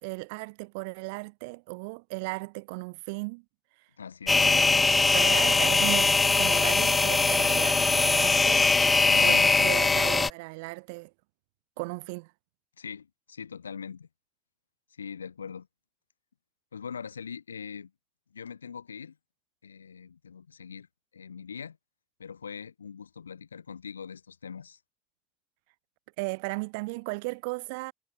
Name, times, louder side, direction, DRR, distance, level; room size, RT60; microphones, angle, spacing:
voice 1, 0.0-3.4 4.4-11.1 11.8-12.3 26.2-27.9, right 29 dB, 70° right, 2.5 m, -36 dB
voice 2, 4.0-4.6 9.0-9.5 12.8-14.1 14.9-15.7 16.7-17.9 18.3-19.2 19.6-20.9 21.1-21.8 22.2-24.8, left 6 dB, 80° left, 1.3 m, -41 dB
sound 1, 4.3-10.3, left 3 dB, 25° left, 0.4 m, -22 dB
figure-of-eight pair, 50°, 0 cm